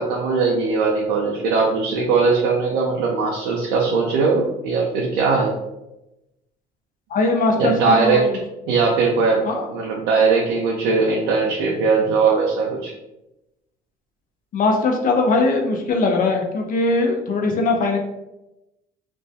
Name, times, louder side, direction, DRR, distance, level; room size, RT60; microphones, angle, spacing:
voice 1, 0.0-5.5 7.6-8.3 8.7-9.4 9.7-12.9, right 4 dB, 85° right, -2 dB, 0.4 m, -20 dB
voice 2, 7.1-8.3 9.4-9.6 14.5-18.0, left 3 dB, 50° left, 3 dB, 0.5 m, -20 dB
2.2 x 2.1 x 2.7 m, 0.93 s
supercardioid pair, 75°, 18 cm